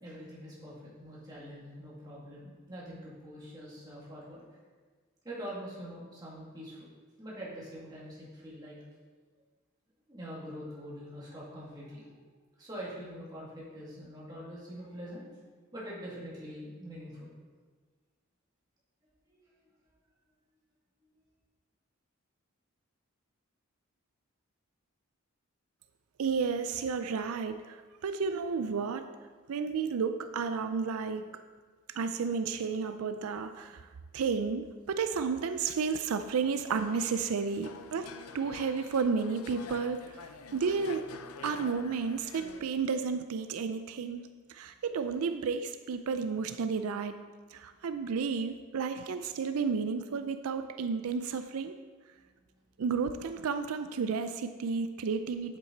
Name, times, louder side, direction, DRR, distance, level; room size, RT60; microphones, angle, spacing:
voice 1, 0.0-4.4 5.2-6.8 7.2-8.8 10.1-12.1 12.6-15.3 15.7-17.3 19.3-19.4, equal, 20° right, -7 dB, 2.1 m, -44 dB
voice 2, 26.2-27.8 28.0-29.1 29.5-31.3 32.0-33.8 34.1-40.0 40.5-41.1 41.4-44.2 44.5-47.2 47.5-51.7 52.8-55.6, right 5 dB, 85° right, 9 dB, 0.4 m, -32 dB
sound 1, 36.7-42.6, left 5 dB, 85° left, 0.5 m, -47 dB
8.3 x 7.8 x 3.9 m, 1.4 s
head